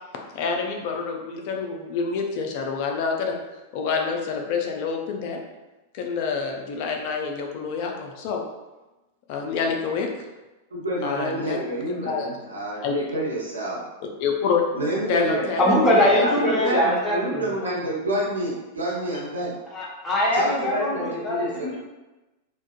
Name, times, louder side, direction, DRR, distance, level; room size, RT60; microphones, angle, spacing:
voice 1, 0.3-3.4 3.7-5.4 5.9-8.4 9.3-10.1 11.0-12.5 12.8-12.9 14.2-14.6 15.1-16.6, left 5 dB, 50° left, 2 dB, 0.4 m, -27 dB
voice 2, 10.7-13.8 14.7-19.5 20.3-21.8, right 1 dB, 80° right, -5 dB, 0.7 m, -28 dB
voice 3, 15.6-17.8 19.7-21.8, left 1 dB, 20° left, -4 dB, 0.8 m, -22 dB
2.4 x 2.2 x 2.4 m, 1.1 s
figure-of-eight pair, 95°, 0 cm